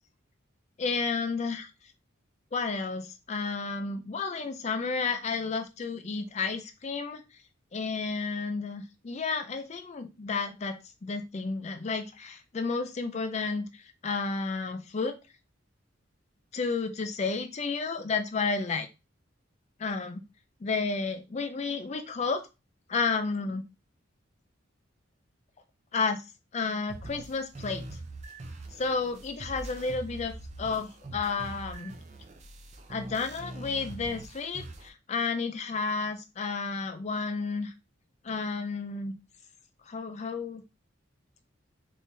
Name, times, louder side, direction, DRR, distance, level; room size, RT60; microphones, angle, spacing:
voice 1, 0.8-1.7 2.5-7.2 7.7-15.2 16.5-18.9 19.8-20.2 20.6-22.5 22.9-23.6 25.9-26.2 26.5-27.8 28.7-31.9 32.9-37.7 38.2-39.1 39.9-40.6, left 4 dB, 35° left, 8 dB, 0.4 m, -31 dB
sound 1, 26.9-34.9, right 2 dB, 35° right, 0.5 m, -43 dB
3.7 x 3.0 x 2.6 m, 0.27 s
head